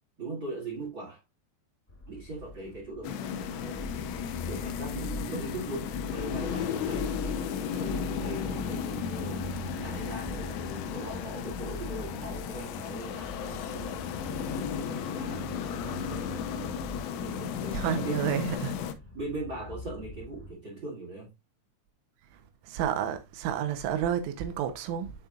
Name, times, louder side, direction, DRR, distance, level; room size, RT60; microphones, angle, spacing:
voice 1, 0.2-1.2 2.1-3.9 4.5-9.5 9.8-14.0 14.5-18.7 19.1-21.3, right 2 dB, 55° right, 1.3 m, -40 dB
sound 1, 1.9-20.5, left 1 dB, 35° left, 1.3 m, -42 dB
sound 2, 3.0-18.9, left 8 dB, 80° left, 2.5 m, -35 dB
voice 2, 17.7-18.7 22.7-25.1, right 9 dB, 80° right, 3.4 m, -30 dB
10.5 x 4.3 x 2.4 m
omnidirectional pair, 5.6 m